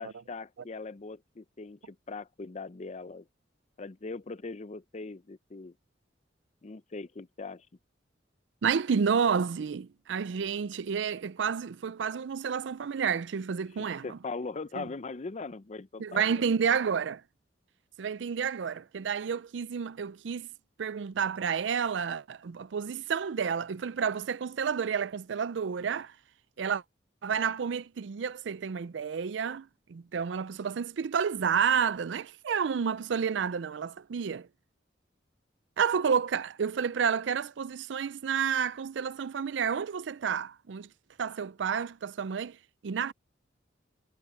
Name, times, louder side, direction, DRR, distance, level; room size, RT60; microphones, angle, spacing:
voice 1, 0.0-3.3 3.8-5.7 6.6-7.7 13.8-16.5, left 3 dB, 40° left, 0.6 m, -40 dB
voice 2, 8.6-14.2 14.8-14.9 16.0-17.2 18.0-20.5 20.8-26.1 26.6-26.8 27.2-34.5 35.8-40.9 41.2-42.6 42.8-43.1, right 6 dB, 70° right, 0.4 m, -30 dB
head